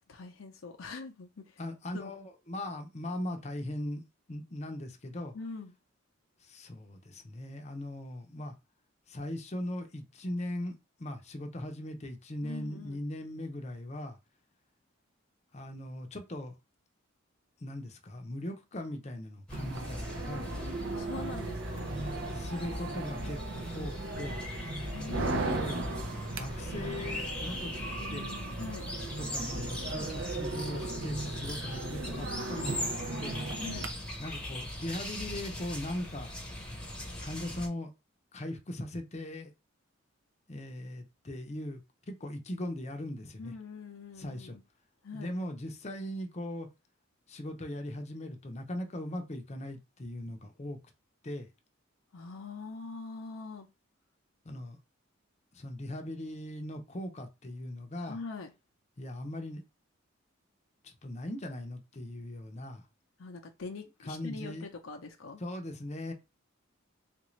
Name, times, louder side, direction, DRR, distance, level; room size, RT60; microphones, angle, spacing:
voice 1, 0.1-1.5 1.9-2.1 5.3-5.7 12.4-13.0 20.9-22.0 24.8-25.6 28.6-28.9 33.6-33.9 43.4-44.6 45.0-45.3 52.1-53.7 58.0-58.5 63.2-65.4, left 4 dB, 80° left, 0.6 m, -43 dB
voice 2, 1.6-4.0 4.3-5.4 6.4-8.5 9.1-14.2 15.5-16.6 17.6-20.5 22.3-24.4 25.5-25.8 26.4-27.7 28.1-28.3 29.2-32.9 33.2-33.4 34.2-36.3 37.2-37.9 38.3-39.5 40.5-41.8 42.1-43.5 44.2-44.6 45.1-46.7 47.3-50.8 51.2-51.5 54.4-54.8 55.5-58.2 59.0-59.6 60.8-62.8 64.0-64.7 65.4-66.1, left 1 dB, 35° left, 0.6 m, -39 dB
sound 1, 19.5-37.7, left 1 dB, 5° left, 0.9 m, -40 dB
sound 2, 19.5-33.9, right 2 dB, 60° right, 0.5 m, -37 dB
3.6 x 2.5 x 3.1 m
head